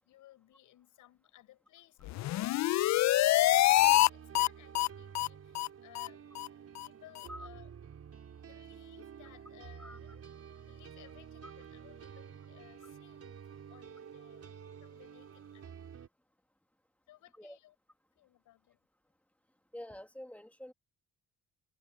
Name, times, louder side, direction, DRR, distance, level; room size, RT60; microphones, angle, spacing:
voice 1, 0.0-6.2 6.7-7.7 8.3-10.2 10.6-15.8 17.1-17.8 18.2-18.8, left 14 dB, 90° left, 7.4 m, -60 dB
sound 1, 2.1-4.1 4.3-4.5 4.7-4.9 5.1-5.3 5.5-5.7 5.9-6.1 6.4-6.5 6.8-6.9 7.2-7.3, left 16 dB, 65° left, 0.4 m, -26 dB
sound 2, 3.8-16.1, right 8 dB, 55° right, 5.2 m, -50 dB
voice 2, 19.7-20.7, left 1 dB, 5° left, 2.2 m, -46 dB
cardioid pair, 90°, 30 cm